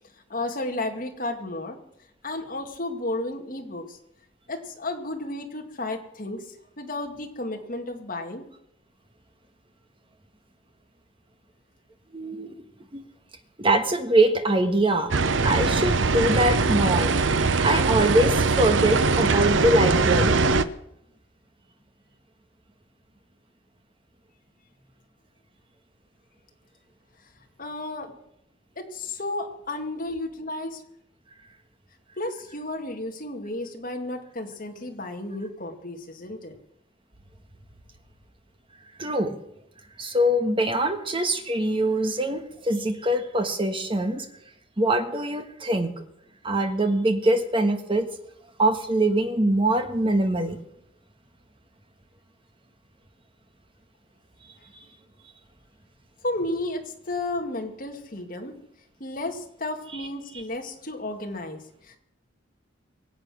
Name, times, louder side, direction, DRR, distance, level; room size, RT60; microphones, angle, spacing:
voice 1, 0.3-1.8 2.2-4.0 4.5-8.4 27.6-28.2 28.8-30.8 32.2-36.5 56.2-58.6 59.0-62.0, left 2 dB, 45° left, 3 dB, 2.1 m, -33 dB
voice 2, 12.1-12.5 12.9-13.0 13.6-15.1 15.4-17.1 17.6-20.4 39.0-39.4 40.0-44.2 44.8-45.9 46.4-48.1 48.6-50.6, right 1 dB, 25° right, 6 dB, 1.5 m, -23 dB
sound 1, 15.1-20.7, right 4 dB, 75° right, 0.7 m, -21 dB
23.5 x 8.1 x 6.3 m, 0.78 s
head